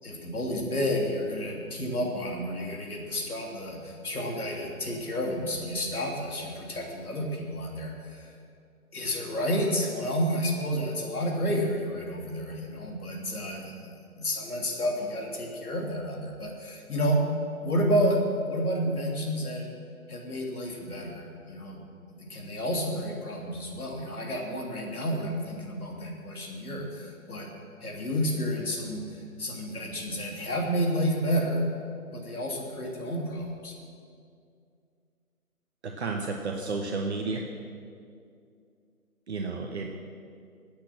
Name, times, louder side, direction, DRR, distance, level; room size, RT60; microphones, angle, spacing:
voice 1, 0.0-8.4 8.9-17.2 17.6-18.2 18.5-19.6 20.1-21.8 22.2-27.5 27.8-31.6 32.1-33.7, equal, 75° left, -1 dB, 3.1 m, -30 dB
voice 2, 36.0-37.4 39.3-40.0, right 3 dB, 45° right, 2 dB, 1.3 m, -31 dB
17.5 x 8.7 x 6.2 m, 2.3 s
figure-of-eight pair, 150°, 44 cm